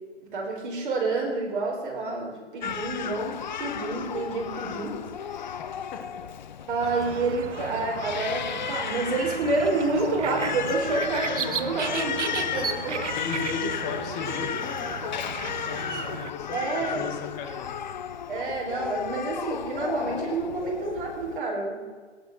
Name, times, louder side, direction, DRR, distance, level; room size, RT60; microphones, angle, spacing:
voice 1, 0.3-5.0 6.7-13.0 16.5-17.1 18.3-21.9, right 3 dB, 45° right, -1 dB, 4.9 m, -29 dB
Crying sobbing, 2.6-21.4, left 8 dB, 40° left, 0.4 m, -34 dB
voice 2, 5.9-6.2 11.9-12.1 12.4-12.7 13.1-17.8, left 5 dB, 15° left, 4 dB, 1.0 m, -36 dB
sound 1, 6.8-16.3, right 7 dB, 85° right, 1.1 m, -35 dB
17.0 x 8.3 x 6.3 m, 1.5 s
hypercardioid pair, 165°, 35 cm